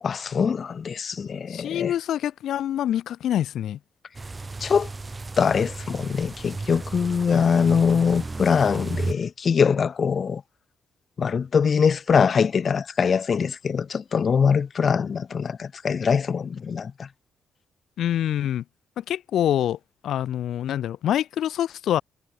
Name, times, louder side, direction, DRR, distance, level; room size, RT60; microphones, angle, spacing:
voice 1, 0.0-1.9 4.6-4.9 5.4-10.4 11.2-17.1, left 6 dB, 55° left, 1.6 m, -23 dB
voice 2, 1.5-3.8 7.3-7.5 18.0-18.6 19.0-19.8 20.0-22.0, left 11 dB, 75° left, 5.3 m, -25 dB
sound 1, 4.1-9.1, right 3 dB, 30° right, 6.2 m, -34 dB
hypercardioid pair, 45°, 0 cm